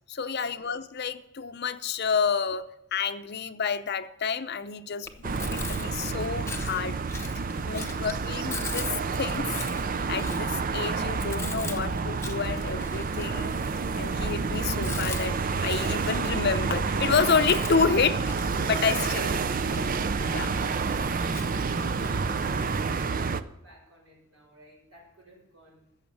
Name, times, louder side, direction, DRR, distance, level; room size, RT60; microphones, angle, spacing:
voice 1, 0.1-5.1 5.5-7.0 7.6-9.5 10.1-13.6 14.0-18.2 18.6-19.3 19.8-19.9 20.3-20.5, left 5 dB, 50° left, 11 dB, 0.7 m, -29 dB
Chewing mastication, 5.0-23.1, left 3 dB, 15° left, 0.9 m, -42 dB
sound 1, 5.2-23.4, right 4 dB, 40° right, 0.5 m, -29 dB
voice 2, 20.2-25.9, right 2 dB, 70° right, -2 dB, 6.5 m, -52 dB
14.0 x 7.3 x 7.3 m, 0.80 s
head